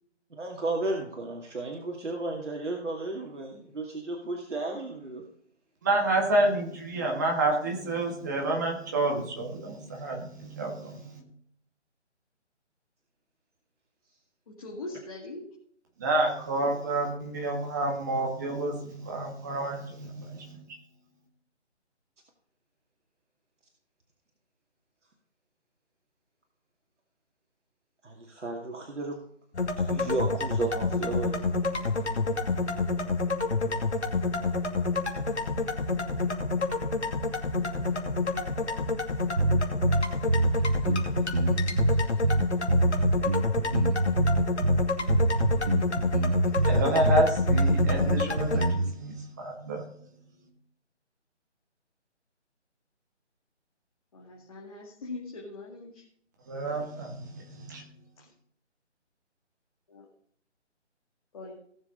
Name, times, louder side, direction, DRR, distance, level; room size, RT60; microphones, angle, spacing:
voice 1, 0.4-5.2 28.0-29.2 29.8-31.6, right 2 dB, 75° right, 0 dB, 2.4 m, -34 dB
voice 2, 5.8-11.2 16.0-20.7 46.5-50.0 56.5-57.9, right 2 dB, 15° right, 1 dB, 1.6 m, -29 dB
voice 3, 14.5-15.4 54.1-55.9 59.9-60.0 61.3-61.6, left 2 dB, 30° left, -3 dB, 2.2 m, -41 dB
sound 1, 29.5-48.7, left 3 dB, 65° left, 2.6 m, -29 dB
sound 2, 39.4-49.0, right 2 dB, 35° right, 0.5 m, -25 dB
18.0 x 7.2 x 3.9 m, 0.65 s
figure-of-eight pair, 170°, 36 cm